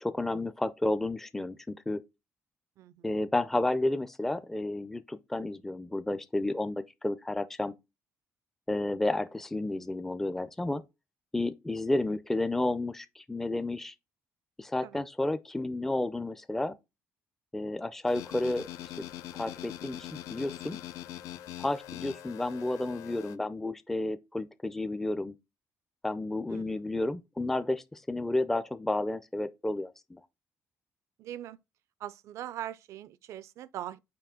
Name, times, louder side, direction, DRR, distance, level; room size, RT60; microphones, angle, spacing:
voice 1, 0.0-2.0 3.0-7.7 8.7-10.8 11.3-13.9 14.6-16.7 17.5-18.7 19.3-20.8 21.6-25.4 26.0-30.2, left 2 dB, 5° left, 0.4 m, -31 dB
voice 2, 2.8-3.1 14.8-15.0 26.5-26.8 31.2-31.6 32.0-34.0, right 12 dB, 70° right, 0.4 m, -41 dB
sound 1, 18.1-23.4, left 12 dB, 90° left, 0.4 m, -43 dB
5.7 x 4.6 x 3.7 m
cardioid pair, 125°, 5 cm